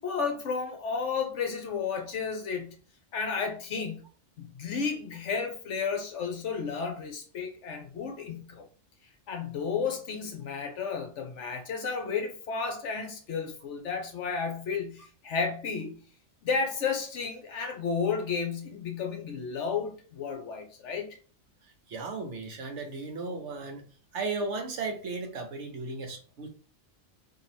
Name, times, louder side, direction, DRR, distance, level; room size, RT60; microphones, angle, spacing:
voice 1, 0.0-2.8 3.1-4.0 4.4-8.6 9.3-16.0 16.4-21.1, left 5 dB, 65° left, 1.0 m, -32 dB
voice 2, 21.9-23.9 24.1-26.5, right 3 dB, 65° right, 1.0 m, -35 dB
2.9 x 2.7 x 4.1 m
omnidirectional pair, 1.4 m